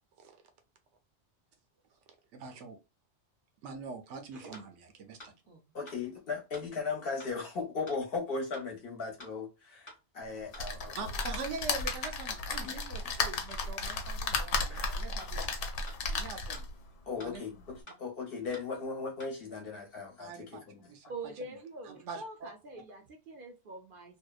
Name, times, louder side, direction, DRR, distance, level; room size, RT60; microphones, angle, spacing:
voice 1, 2.3-2.8 3.6-5.3 10.9-15.6 16.1-16.7 17.2-17.4 20.2-20.6 20.9-21.1 21.4-21.6 21.8-22.5, right 4 dB, 85° right, 0.9 m, -43 dB
voice 2, 4.3-4.6 5.5-5.6 21.1-24.2, right 2 dB, 60° right, 0.6 m, -45 dB
sound 1, 4.5-4.7 5.2-5.3 5.9-6.0 6.5-6.7 7.2-7.3 7.9-8.0 8.5-8.7 9.2-9.3 9.9-10.0 10.5-10.7 11.2-11.3 11.9-12.0 12.5-12.7 13.2-13.3 13.9-14.0 14.5-14.7 15.2-15.3 15.9-16.0 16.5-16.7 17.2-17.3 17.9-18.0 18.5-18.7 19.2-19.3, left 1 dB, 30° left, 0.8 m, -50 dB
voice 3, 5.7-11.0 12.6-12.7 13.8-14.0 14.7-15.0 17.1-20.9, left 4 dB, 60° left, 0.9 m, -37 dB
sound 2, 10.6-16.8 17.3-17.4 17.7-17.8, left 4 dB, 85° left, 0.9 m, -34 dB
2.8 x 2.0 x 2.3 m
omnidirectional pair, 1.2 m